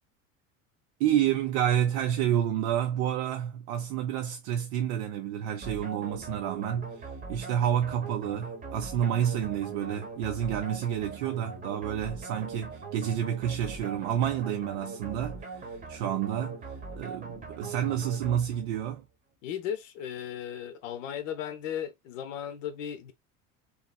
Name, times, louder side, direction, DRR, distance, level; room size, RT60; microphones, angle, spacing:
voice 1, 1.0-19.1, right 10 dB, 50° right, 0.5 m, -29 dB
sound 1, 5.6-18.9, right 4 dB, 20° right, 0.9 m, -41 dB
voice 2, 19.4-23.1, left 9 dB, 60° left, 0.7 m, -36 dB
3.1 x 2.5 x 2.2 m
figure-of-eight pair, 75°, 44 cm